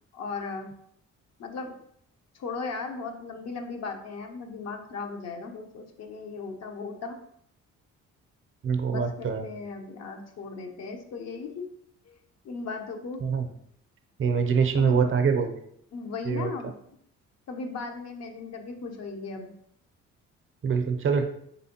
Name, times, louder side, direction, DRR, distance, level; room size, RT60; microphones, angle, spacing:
voice 1, 0.1-0.7 1.4-1.7 2.3-7.2 8.9-11.6 12.0-12.1 12.4-13.2 14.8-15.1 15.9-16.8 17.5-19.5, left 4 dB, 60° left, 4 dB, 0.8 m, -37 dB
voice 2, 8.6-9.4 13.2-13.5 14.2-15.5 16.2-16.5 20.6-21.3, right 6 dB, 45° right, 6 dB, 0.6 m, -24 dB
4.1 x 3.4 x 2.8 m, 0.70 s
cardioid pair, 90°, 30 cm